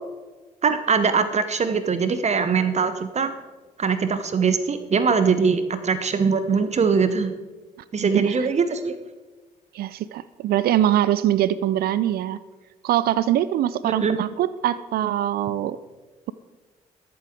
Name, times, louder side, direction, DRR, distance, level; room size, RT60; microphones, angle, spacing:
voice 1, 0.6-3.3 3.8-7.3 7.9-8.9 13.8-14.2, right 5 dB, 35° right, 11 dB, 0.9 m, -22 dB
voice 2, 8.0-8.4 9.7-12.4 12.8-15.8, right 12 dB, 50° right, 17 dB, 0.5 m, -23 dB
22.0 x 7.8 x 3.7 m, 1.2 s
figure-of-eight pair, 45°, 19 cm